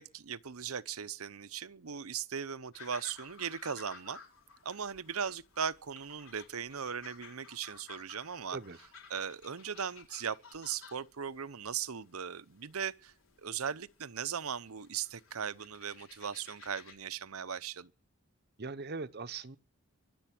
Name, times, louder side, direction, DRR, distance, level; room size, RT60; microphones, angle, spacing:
voice 1, 0.0-4.2 4.6-8.6 9.1-13.1 13.4-17.9, right 7 dB, 80° right, 0.8 m, -38 dB
sound 1, 2.7-16.9, left 5 dB, 65° left, 4.5 m, -55 dB
voice 2, 18.6-19.6, right 4 dB, 45° right, 0.9 m, -40 dB
24.0 x 8.0 x 6.1 m
head